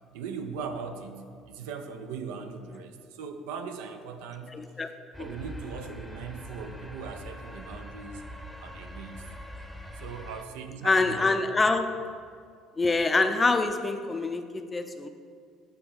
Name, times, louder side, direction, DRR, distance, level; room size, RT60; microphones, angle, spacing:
voice 1, 0.1-4.6 5.2-8.2 8.6-9.3 10.0-11.3, right 5 dB, 75° right, 7 dB, 0.4 m, -39 dB
voice 2, 4.5-4.9 5.2-5.3 10.8-12.0 12.8-15.1, left 3 dB, 25° left, 8 dB, 0.5 m, -25 dB
sound 1, 5.1-10.4, equal, ahead, 0.8 m, -43 dB
7.9 x 3.0 x 5.0 m, 2.2 s
hypercardioid pair, 60°, 0 cm